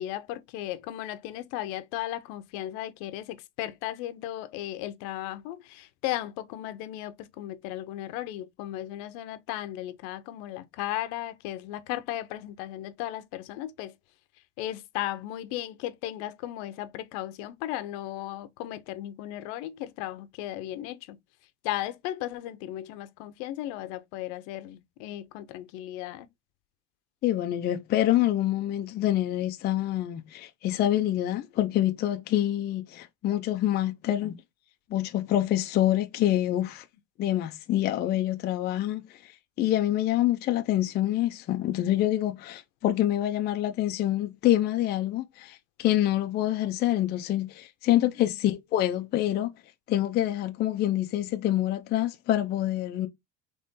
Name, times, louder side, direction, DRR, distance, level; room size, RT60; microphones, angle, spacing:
voice 1, 0.0-13.9 14.6-21.2 21.6-26.3 48.0-48.1, left 13 dB, 70° left, 0.7 m, -36 dB
voice 2, 27.2-34.4 34.9-36.8 37.2-39.0 39.6-49.5 49.9-53.1, left 13 dB, 30° left, 0.4 m, -26 dB
4.1 x 3.1 x 3.6 m
cardioid pair, 155°, 34 cm